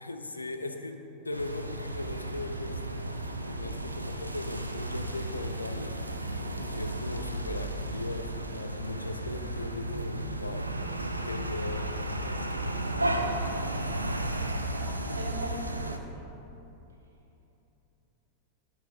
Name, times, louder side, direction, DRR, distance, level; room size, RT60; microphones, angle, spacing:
voice 1, 0.0-2.8 3.5-6.0 6.7-11.0 11.2-12.6 13.4-13.7, left 2 dB, 80° left, 6 dB, 0.4 m, -38 dB
sound 1, 1.3-16.0, right 1 dB, 85° right, 0.4 m, -34 dB
voice 2, 6.3-6.6 14.3-16.2, right 1 dB, 70° right, -1 dB, 1.1 m, -42 dB
9.1 x 3.6 x 4.8 m, 3.0 s
figure-of-eight pair, 90°, 0 cm